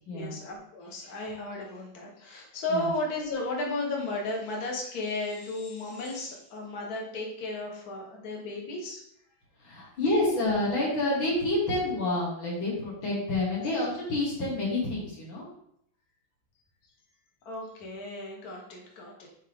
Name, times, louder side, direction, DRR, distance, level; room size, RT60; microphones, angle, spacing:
voice 1, 0.1-9.0 13.6-13.7 17.5-19.3, left 2 dB, 55° left, -1 dB, 1.7 m, -34 dB
voice 2, 9.6-15.5, left 2 dB, 75° left, -4 dB, 2.8 m, -28 dB
8.2 x 3.2 x 3.6 m, 0.71 s
omnidirectional pair, 2.1 m